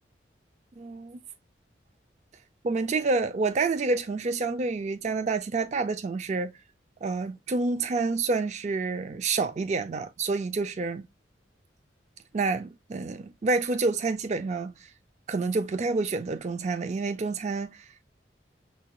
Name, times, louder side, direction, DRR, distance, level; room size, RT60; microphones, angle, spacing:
voice 1, 0.8-1.2 2.6-6.5 7.0-11.0 12.3-14.7 15.3-17.8, right 3 dB, 40° right, 0.3 m, -28 dB
6.6 x 2.2 x 2.9 m
head